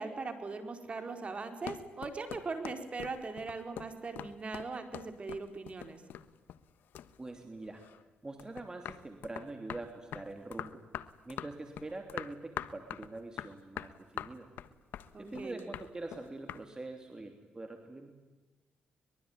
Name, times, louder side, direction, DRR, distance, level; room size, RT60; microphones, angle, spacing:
voice 1, 0.0-6.0 15.1-15.6, right 4 dB, 40° right, 7 dB, 4.6 m, -40 dB
sound 1, 1.3-6.7 6.9-8.0 8.4-16.6, left 10 dB, 80° left, 1.2 m, -43 dB
voice 2, 7.2-7.8 8.2-10.8 11.2-14.5 15.2-18.2, right 2 dB, 20° right, 5 dB, 3.1 m, -44 dB
23.5 x 22.5 x 9.8 m, 1.2 s
cardioid pair, 85°, 3 cm